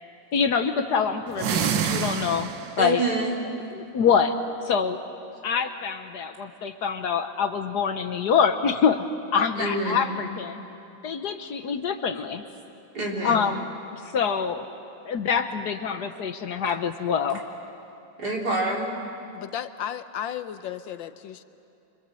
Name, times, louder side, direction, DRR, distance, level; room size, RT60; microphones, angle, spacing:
voice 1, 0.3-2.5 2.8-3.0 3.7-4.4 4.7-5.0 5.4-9.0 9.3-10.6 11.0-12.4 13.2-13.6 14.1-14.6 15.0-17.4, left 6 dB, 60° left, 8 dB, 1.4 m, -25 dB
sound 1, 1.3-2.9, right 8 dB, 80° right, 1.7 m, -27 dB
voice 2, 2.8-3.5 9.6-10.2 12.9-13.5 18.2-18.9, right 2 dB, 55° right, -2 dB, 4.1 m, -27 dB
voice 3, 19.3-21.4, left 10 dB, 80° left, 11 dB, 1.6 m, -34 dB
26.5 x 25.5 x 7.7 m, 2.7 s
omnidirectional pair, 2.0 m